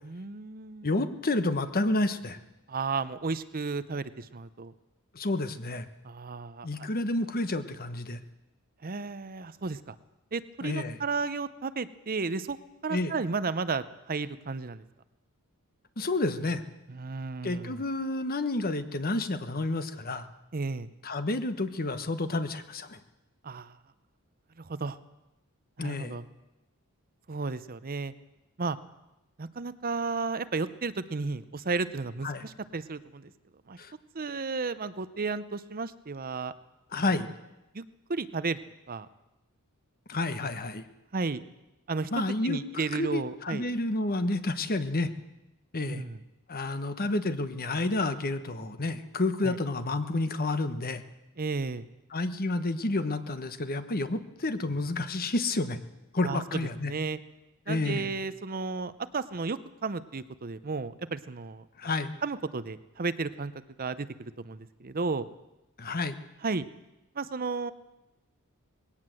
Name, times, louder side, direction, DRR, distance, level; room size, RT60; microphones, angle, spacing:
voice 1, 0.0-0.9 2.7-4.7 6.0-6.9 8.8-9.9 10.3-12.6 12.8-14.8 16.9-17.8 20.5-20.9 23.4-23.8 24.6-25.0 25.8-26.2 27.3-28.1 28.6-28.8 29.4-33.3 33.7-33.8 34.1-36.5 36.9-37.2 37.7-37.8 38.1-38.6 38.9-39.1 41.1-41.4 41.9-43.7 45.8-46.2 49.4-49.6 51.4-51.9 56.2-57.2 57.7-61.9 62.2-63.5 63.8-65.3 66.4-66.6 67.1-67.7, right 4 dB, 40° right, 14 dB, 0.7 m, -33 dB
voice 2, 0.8-2.4 5.1-5.9 6.6-8.2 10.6-11.0 12.9-13.1 16.0-16.6 17.4-20.3 21.0-23.0 25.8-26.2 32.2-32.4 33.8-33.9 36.9-37.3 40.1-40.8 42.1-45.1 45.7-46.0 46.5-51.0 52.1-55.8 56.1-56.9 57.7-58.1 61.8-62.1 65.8-66.2, left 2 dB, 40° left, 10 dB, 1.2 m, -30 dB
19.5 x 17.5 x 7.7 m, 0.95 s
head